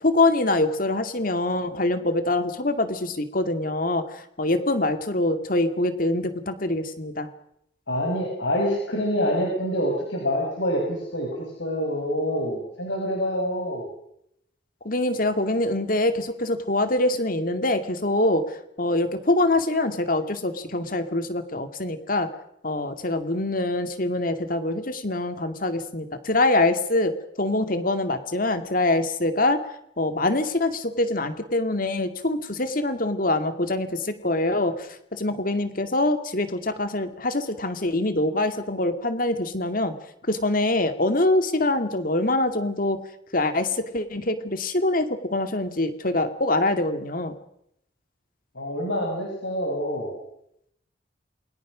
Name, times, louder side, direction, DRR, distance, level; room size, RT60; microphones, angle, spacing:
voice 1, 0.0-7.3 14.8-22.3 22.6-29.6 30.0-39.9 40.2-43.0 43.3-47.3, left 2 dB, 45° left, 9 dB, 2.4 m, -24 dB
voice 2, 7.9-13.9 48.5-50.2, equal, 75° left, 0 dB, 6.0 m, -26 dB
28.0 x 22.5 x 6.3 m, 0.76 s
head